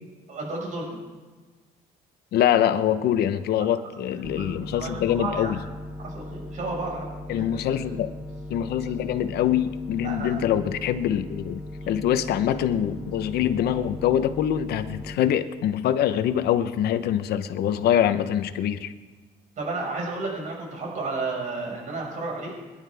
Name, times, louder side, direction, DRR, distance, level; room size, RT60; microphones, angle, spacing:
voice 1, 0.3-1.0 3.6-3.8 4.1-5.5 6.0-7.1 7.7-7.8 10.0-10.4 11.8-11.9 19.6-22.5, right 3 dB, 50° right, -2 dB, 5.5 m, -32 dB
voice 2, 2.3-5.6 7.3-8.1 8.5-18.9, left 10 dB, 70° left, 11 dB, 1.0 m, -24 dB
sound 1, 4.2-15.2, left 1 dB, 5° right, 0.8 m, -38 dB
23.0 x 11.5 x 3.5 m, 1.3 s
cardioid pair, 110°, 17 cm